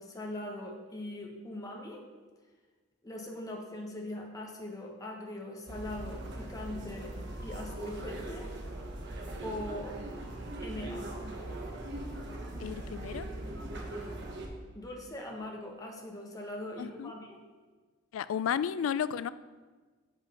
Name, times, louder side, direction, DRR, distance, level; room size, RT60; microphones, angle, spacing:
voice 1, 0.0-2.0 3.0-7.1 7.4-8.5 9.4-10.0 10.6-11.1 14.7-17.4, left 1 dB, 20° left, 0 dB, 1.2 m, -41 dB
sound 1, 5.7-14.5, right 1 dB, 60° right, 1.1 m, -40 dB
voice 2, 12.6-13.3 16.8-17.1 18.1-19.3, left 8 dB, 85° left, 16 dB, 0.3 m, -32 dB
7.4 x 5.6 x 5.3 m, 1.4 s
head